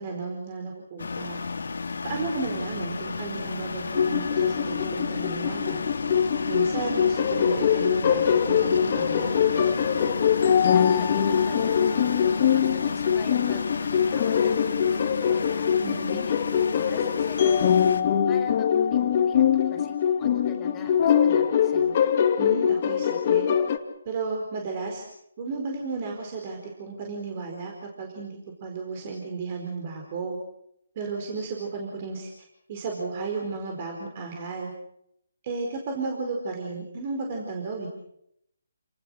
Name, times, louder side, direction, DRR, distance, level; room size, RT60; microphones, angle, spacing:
voice 1, 0.0-1.4 2.0-5.8 6.5-9.4 15.8-16.3 22.4-23.5 24.0-25.0 25.4-27.7 28.0-30.3 30.9-32.3 32.7-34.7 35.4-37.9, right 4 dB, 35° right, 2 dB, 4.7 m, -33 dB
sound 1, 1.0-18.0, left 4 dB, 70° left, 2.4 m, -32 dB
sound 2, 3.9-23.8, left 8 dB, 40° left, 2.3 m, -23 dB
voice 2, 10.7-15.7 16.1-17.9 18.3-22.1, left 2 dB, 15° left, 2 dB, 5.3 m, -45 dB
29.5 x 19.5 x 6.5 m, 0.76 s
hypercardioid pair, 155°, 0 cm